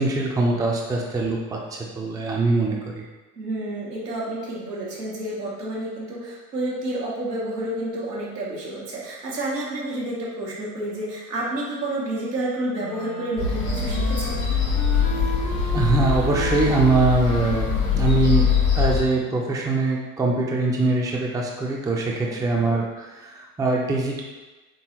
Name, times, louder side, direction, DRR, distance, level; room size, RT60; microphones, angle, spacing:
voice 1, 0.0-3.0 15.7-17.7 17.9-18.5 18.7-24.2, right 3 dB, 10° right, -2 dB, 0.5 m, -22 dB
voice 2, 3.4-14.5 22.3-22.4, right 1 dB, 85° right, -6 dB, 1.2 m, -30 dB
Wind instrument woodwind instrument, 12.8-18.7, left 1 dB, 85° left, 0.7 m, -34 dB
sound 1, 13.4-19.0, left 6 dB, 60° left, 1.3 m, -23 dB
3.9 x 3.8 x 2.9 m, 1.2 s
figure-of-eight pair, 65°, 47 cm